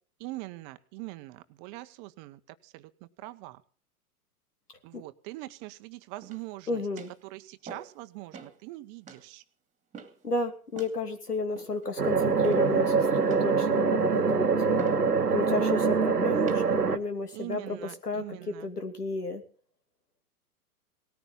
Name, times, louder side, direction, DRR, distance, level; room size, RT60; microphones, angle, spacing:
voice 1, 0.2-2.9 3.2-3.6 4.8-6.8 7.2-9.4 17.3-18.7, right 19 dB, 35° right, 12 dB, 1.0 m, -42 dB
sound 1, 6.2-6.6 7.0-7.2 7.7-8.0 8.3-8.6 9.1-9.3 9.9-10.3 10.7-11.0 11.6-12.0 12.4-12.8 13.2-13.6 14.0-14.3 14.8-15.1 15.6-15.8 16.4-16.6 17.3-17.6, right 5 dB, 15° right, 2.2 m, -46 dB
voice 2, 6.7-7.1 10.2-19.4, left 2 dB, 85° left, 7 dB, 2.9 m, -32 dB
sound 2, 12.0-17.0, right 5 dB, 90° right, 1.3 m, -24 dB
18.5 x 14.0 x 3.9 m, 0.42 s
figure-of-eight pair, 105°, 46 cm